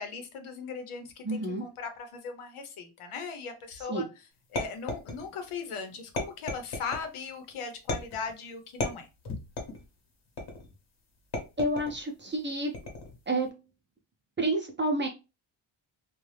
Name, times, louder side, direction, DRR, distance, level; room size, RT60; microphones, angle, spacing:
voice 1, 0.0-4.1 4.5-9.1, left 5 dB, 85° left, 0.8 m, -38 dB
voice 2, 1.2-1.6 3.9-4.0 11.6-12.7 13.3-13.5 14.4-15.1, right 1 dB, 25° right, 0.5 m, -29 dB
bouncy ball on tile, 4.6-5.5 6.2-7.1 7.9-8.3 8.8-9.9 10.4-10.8 11.3-12.0 12.7-13.2, left 2 dB, 55° left, 1.0 m, -35 dB
2.6 x 2.3 x 3.2 m
wide cardioid pair, 150°, 49 cm